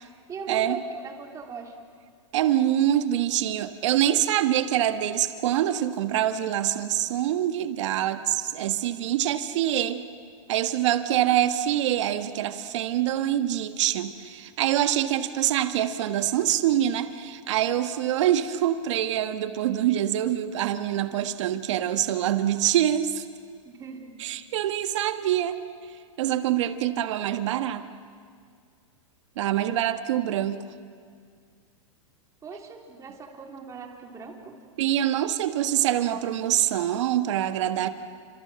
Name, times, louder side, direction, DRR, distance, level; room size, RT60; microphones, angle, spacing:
voice 1, 0.3-1.7 23.6-24.1 32.4-34.6, right 5 dB, 20° right, 2 dB, 3.5 m, -39 dB
voice 2, 2.3-10.0 10.5-23.2 24.2-25.6 26.2-27.8 29.4-30.6 34.8-37.9, right 11 dB, 60° right, 8 dB, 1.6 m, -25 dB
29.5 x 26.5 x 7.6 m, 2.1 s
hypercardioid pair, 135°, 17 cm